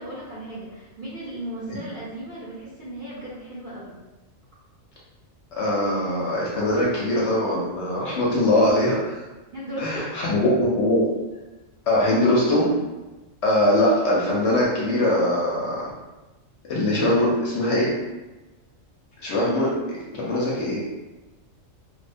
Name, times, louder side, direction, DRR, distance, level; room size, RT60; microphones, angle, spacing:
voice 1, 0.0-3.9 9.5-10.1, right 1 dB, 50° right, -9 dB, 0.7 m, -36 dB
voice 2, 5.6-9.2 9.8-11.1 11.9-12.7 13.4-15.8 16.7-17.9 19.2-20.8, left 1 dB, 65° left, -5 dB, 0.8 m, -22 dB
2.3 x 2.1 x 2.5 m, 1.1 s
omnidirectional pair, 1.4 m